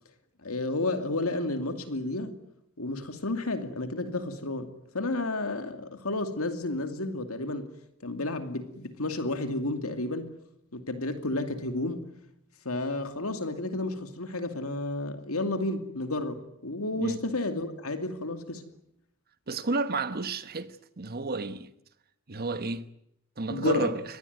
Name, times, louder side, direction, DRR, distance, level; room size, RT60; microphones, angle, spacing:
voice 1, 0.4-2.4 2.8-7.7 8.0-10.3 10.7-12.1 12.6-18.6 23.5-23.9, left 2 dB, 70° left, 2.5 m, -31 dB
voice 2, 19.5-21.7 22.3-22.8 23.4-24.0, right 3 dB, 45° right, 1.2 m, -31 dB
24.5 x 19.5 x 9.4 m
head